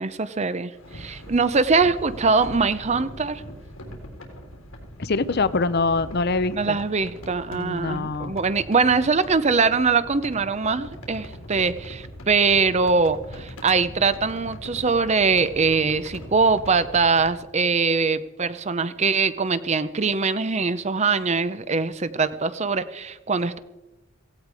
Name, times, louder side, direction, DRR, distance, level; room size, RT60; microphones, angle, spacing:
voice 1, 0.0-3.4 6.5-23.6, right 4 dB, 30° right, 14 dB, 0.7 m, -22 dB
sound 1, 0.7-17.4, equal, 90° left, 3.7 m, -41 dB
voice 2, 5.0-6.8 7.5-8.3, left 3 dB, 50° left, 14 dB, 0.7 m, -24 dB
17.0 x 16.5 x 4.9 m, 1.0 s
head